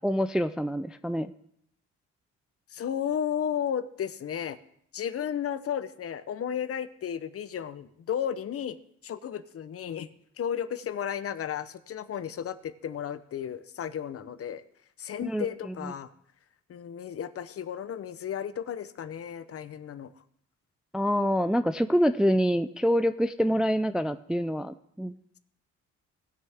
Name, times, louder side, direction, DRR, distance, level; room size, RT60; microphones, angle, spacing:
voice 1, 0.0-1.3 15.2-15.5 15.8-15.9 20.9-25.1, equal, 5° right, 10 dB, 0.3 m, -26 dB
voice 2, 2.7-4.6 4.9-8.8 9.0-10.1 10.4-14.6 15.0-16.1 16.7-20.1, left 9 dB, 50° left, 13 dB, 0.7 m, -33 dB
18.5 x 6.4 x 3.5 m, 0.70 s
cardioid pair, 90°, 30 cm